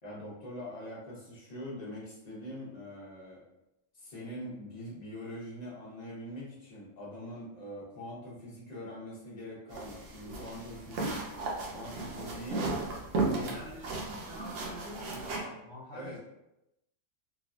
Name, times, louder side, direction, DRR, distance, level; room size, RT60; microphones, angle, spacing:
voice 1, 0.0-3.4 3.9-11.1 11.7-12.7 13.2-13.6 15.9-16.2, left 1 dB, 35° left, -6 dB, 0.9 m, -43 dB
sound 1, 9.7-15.4, right 3 dB, 75° right, 1.0 m, -35 dB
voice 2, 13.1-16.2, equal, 50° right, -8 dB, 0.7 m, -46 dB
3.0 x 2.3 x 2.3 m, 0.89 s
omnidirectional pair, 1.3 m